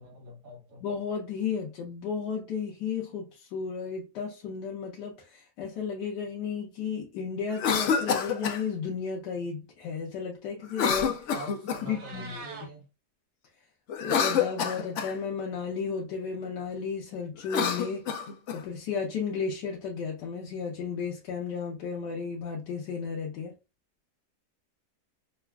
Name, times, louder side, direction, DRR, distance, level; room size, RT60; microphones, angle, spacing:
voice 1, 0.0-0.8 11.3-12.9, equal, 75° right, 2.1 m, -44 dB
voice 2, 0.8-11.3 11.8-12.4 14.0-18.1 18.5-23.5, left 6 dB, 85° left, 1.4 m, -33 dB
Cough, 7.5-8.6 10.7-12.0 13.9-15.1 17.4-18.6, left 7 dB, 65° left, 0.7 m, -28 dB
Meow, 11.8-12.7, right 3 dB, 50° right, 1.0 m, -43 dB
5.8 x 2.4 x 2.3 m
omnidirectional pair, 1.8 m